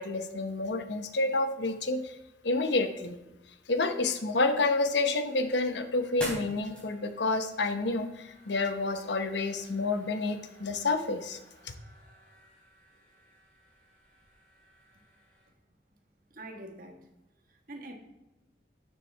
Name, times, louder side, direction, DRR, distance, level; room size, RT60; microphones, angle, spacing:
voice 1, 0.0-2.1 2.4-3.2 3.7-11.4, left 3 dB, 75° left, 8 dB, 0.9 m, -29 dB
sound 1, 4.5-15.5, equal, 5° left, 3.5 m, -48 dB
voice 2, 16.3-17.0 17.5-17.9, right 1 dB, 50° right, 3 dB, 1.4 m, -44 dB
12.0 x 7.4 x 3.4 m, 1.0 s
head